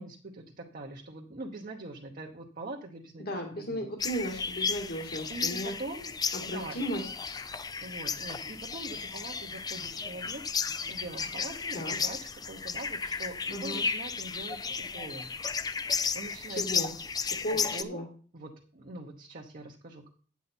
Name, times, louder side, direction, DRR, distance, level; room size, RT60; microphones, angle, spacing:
voice 1, 0.0-3.8 5.3-6.1 6.4-6.8 7.8-10.4 10.9-12.2 12.4-15.3 15.7-16.9 17.5-18.0 18.3-20.1, right 2 dB, 50° right, 0 dB, 1.1 m, -43 dB
voice 2, 3.2-5.7 6.3-7.4 11.7-12.0 13.5-13.9 16.5-16.9 17.4-18.1, equal, 55° left, 2 dB, 2.0 m, -35 dB
sound 1, 4.0-17.8, left 5 dB, 20° left, 0.4 m, -34 dB
9.2 x 8.3 x 4.4 m, 0.42 s
head